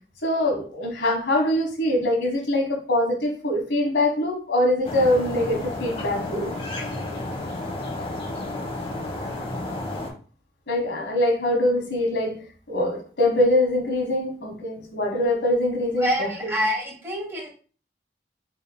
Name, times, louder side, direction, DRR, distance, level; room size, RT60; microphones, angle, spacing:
voice 1, 0.2-6.5 10.7-12.4 12.7-16.6, left 1 dB, 75° left, 2 dB, 1.2 m, -23 dB
sound 1, 4.8-10.1, left 2 dB, 30° left, 0.8 m, -32 dB
voice 2, 16.0-17.5, equal, 15° right, -3 dB, 1.3 m, -26 dB
5.2 x 3.5 x 2.2 m, 0.40 s
head